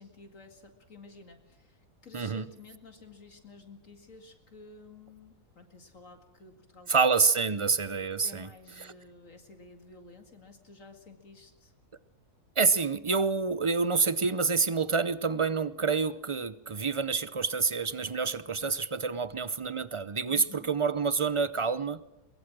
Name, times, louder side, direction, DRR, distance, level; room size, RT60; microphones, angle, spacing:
voice 1, 0.0-6.9 8.2-11.7 19.1-19.2 20.3-20.7, left 3 dB, 55° left, 6 dB, 2.5 m, -52 dB
voice 2, 2.1-2.5 6.9-8.5 8.8-8.9 12.6-22.0, right 5 dB, 45° right, 16 dB, 0.3 m, -27 dB
23.5 x 21.0 x 6.1 m, 0.96 s
omnidirectional pair, 1.7 m